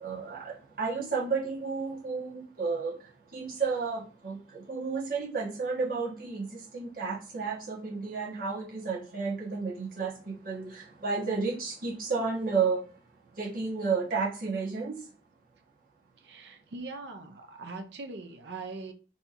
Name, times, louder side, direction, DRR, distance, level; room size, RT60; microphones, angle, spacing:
voice 1, 0.0-3.0 3.3-12.8 13.4-15.0, right 4 dB, 50° right, 1.5 m, -32 dB
voice 2, 16.2-18.9, right 3 dB, 80° right, 0.7 m, -41 dB
4.2 x 3.4 x 2.6 m
head